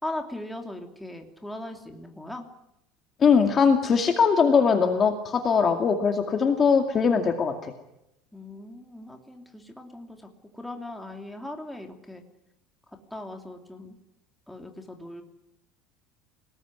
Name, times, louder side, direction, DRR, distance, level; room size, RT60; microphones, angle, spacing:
voice 1, 0.0-2.5 8.3-10.3 10.5-12.2 13.1-14.0 14.5-15.2, left 1 dB, 5° left, 3 dB, 2.9 m, -39 dB
voice 2, 3.2-7.7, left 6 dB, 25° left, 5 dB, 2.3 m, -21 dB
28.5 x 19.5 x 9.7 m, 0.86 s
cardioid pair, 165°, 0 cm